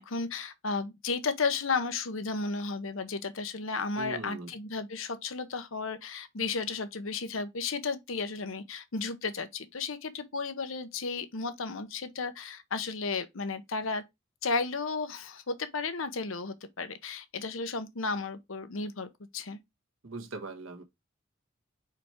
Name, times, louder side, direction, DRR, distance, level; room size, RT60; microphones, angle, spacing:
voice 1, 0.0-14.0 14.4-19.6, left 4 dB, 75° left, 0.9 m, -33 dB
voice 2, 4.0-4.5 20.0-20.8, right 2 dB, 80° right, 1.5 m, -40 dB
5.0 x 4.7 x 4.4 m
head